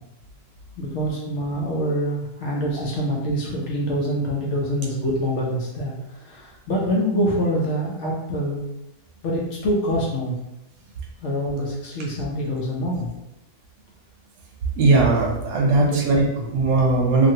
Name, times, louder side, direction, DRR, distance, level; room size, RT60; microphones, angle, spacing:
voice 1, 0.8-8.6 9.2-10.3 11.2-13.1 15.7-16.0 16.4-16.5, equal, 60° left, -3 dB, 0.8 m, -25 dB
voice 2, 14.8-17.3, right 3 dB, 75° right, 0 dB, 1.1 m, -19 dB
3.0 x 2.6 x 2.7 m, 0.92 s
omnidirectional pair, 1.6 m